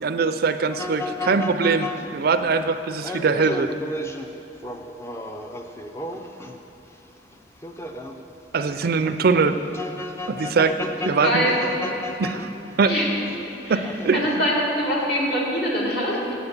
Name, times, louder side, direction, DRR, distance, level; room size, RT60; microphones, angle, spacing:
voice 1, 0.0-3.7 8.5-9.6 10.3-10.8 11.0-11.5 12.2-12.5 12.8-13.0 13.7-14.4, right 4 dB, 60° right, 10 dB, 0.4 m, -22 dB
sound 1, 0.7-6.8 7.3-13.4 13.7-14.3, left 2 dB, 15° left, 0.5 m, -34 dB
voice 2, 11.2-11.5 12.8-13.1 13.7-13.8 14.1-16.3, equal, 65° left, -4 dB, 2.2 m, -23 dB
8.2 x 7.2 x 7.2 m, 2.9 s
head